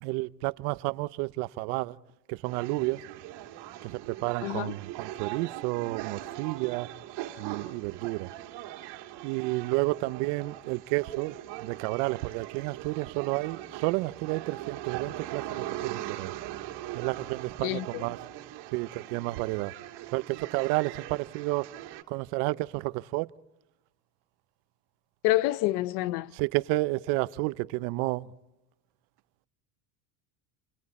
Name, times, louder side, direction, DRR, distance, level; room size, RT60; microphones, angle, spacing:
voice 1, 0.0-2.0 2.3-3.0 3.8-6.9 7.4-8.3 9.2-16.3 16.9-18.2 18.7-19.7 20.1-21.7 22.1-23.3 26.3-28.3, right 21 dB, 80° right, 0.8 m, -31 dB
sound 1, 2.4-22.0, right 14 dB, 60° right, 2.2 m, -41 dB
voice 2, 4.4-4.7 17.6-18.0 25.2-26.3, left 17 dB, 80° left, 0.8 m, -27 dB
29.5 x 28.5 x 4.2 m
cardioid pair, 155°, 44 cm